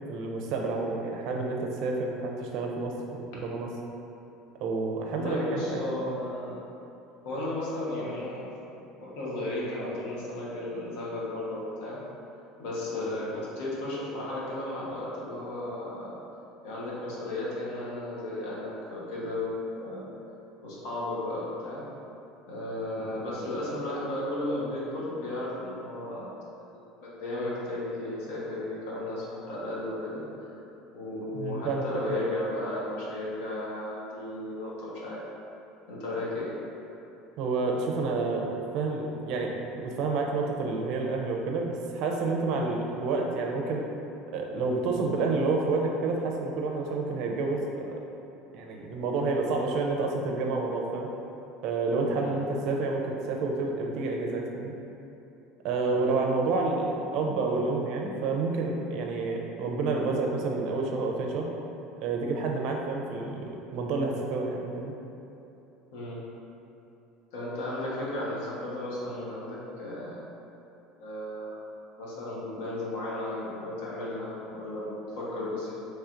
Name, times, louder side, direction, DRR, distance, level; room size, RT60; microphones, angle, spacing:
voice 1, 0.1-3.7 4.6-6.1 31.3-32.1 37.4-43.8 44.3-48.0 48.5-51.1 51.6-54.7 55.6-61.5 62.0-63.4 63.7-64.9, right 3 dB, 55° right, 1 dB, 0.4 m, -29 dB
voice 2, 5.1-6.6 7.2-8.4 9.0-12.0 12.6-16.2 16.6-20.0 20.6-21.8 22.5-26.3 27.0-30.5 30.9-35.2 35.9-36.5 52.1-52.4 55.9-56.1 65.9-66.2 67.3-70.2 71.0-71.7 72.0-75.9, left 1 dB, 80° left, -6 dB, 1.0 m, -34 dB
4.3 x 3.2 x 2.5 m, 2.9 s
cardioid pair, 165°, 0 cm